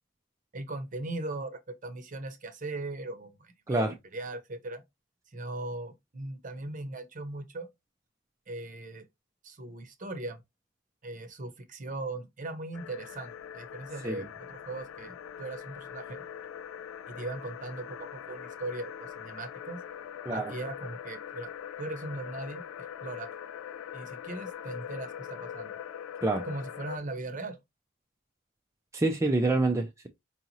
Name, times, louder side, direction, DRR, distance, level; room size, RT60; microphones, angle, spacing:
voice 1, 0.5-3.9 4.1-4.8 5.3-7.7 8.5-9.0 9.4-10.4 11.0-16.2 17.1-19.8 20.3-21.5 21.8-23.3 23.9-25.7 26.4-27.6, right 2 dB, 40° right, 0.7 m, -39 dB
sound 1, 12.7-27.0, left 9 dB, 80° left, 0.3 m, -42 dB
voice 2, 28.9-30.1, right 2 dB, 15° right, 0.4 m, -27 dB
4.7 x 2.9 x 2.7 m
head